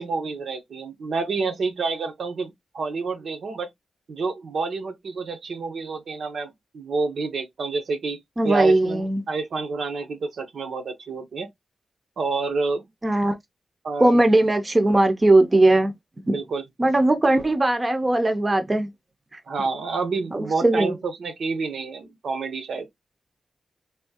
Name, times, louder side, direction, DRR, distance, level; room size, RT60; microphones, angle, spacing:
voice 1, 0.0-3.7 4.1-11.5 12.2-12.8 13.8-14.2 16.3-16.6 19.5-22.9, right 4 dB, 70° right, 0.8 m, -28 dB
voice 2, 8.4-9.2 13.0-13.4 14.0-15.9 16.3-16.4 16.8-18.9 19.3-19.4 20.3-20.9, right 2 dB, 25° right, 0.6 m, -19 dB
3.5 x 2.7 x 2.7 m
wide cardioid pair, 105°, 0 cm